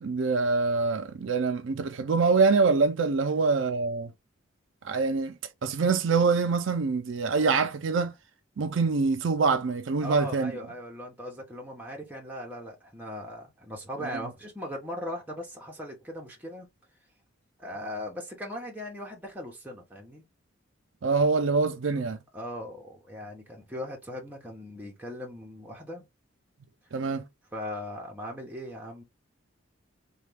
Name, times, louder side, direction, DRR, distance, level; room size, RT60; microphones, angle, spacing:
voice 1, 0.0-4.1 4.8-5.3 5.6-8.1 8.6-10.5 21.0-22.2 26.9-27.2, right 4 dB, 65° right, 0.4 m, -25 dB
voice 2, 10.0-16.7 17.6-20.2 22.3-26.1 27.5-29.0, left 1 dB, 10° right, 0.9 m, -39 dB
3.2 x 2.3 x 3.3 m
head